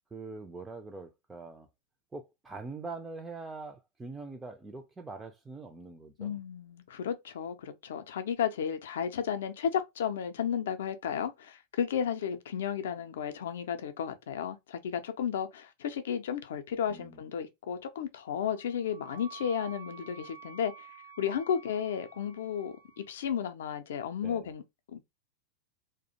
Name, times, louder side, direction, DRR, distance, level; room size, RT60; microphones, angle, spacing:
voice 1, 0.1-1.7 2.1-6.4 16.9-17.2 24.2-24.5, right 3 dB, 10° right, 0.3 m, -43 dB
voice 2, 6.2-20.9 21.2-24.6 24.9-25.0, left 8 dB, 60° left, 0.4 m, -33 dB
Wind instrument woodwind instrument, 18.3-23.1, right 6 dB, 75° right, 0.9 m, -51 dB
2.3 x 2.0 x 2.8 m
figure-of-eight pair, 90°, 0 cm